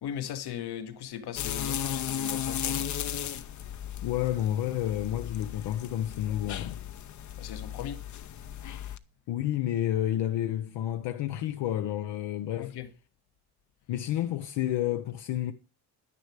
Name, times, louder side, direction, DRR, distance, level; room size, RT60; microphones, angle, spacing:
voice 1, 0.0-2.9 7.4-8.0 12.6-12.9, left 9 dB, 60° left, 1.4 m, -38 dB
sound 1, 1.4-9.0, left 10 dB, 45° left, 0.8 m, -35 dB
voice 2, 4.0-6.8 9.3-12.7 13.9-15.5, left 12 dB, 80° left, 1.0 m, -30 dB
10.5 x 10.0 x 4.9 m
cardioid pair, 150°, 43 cm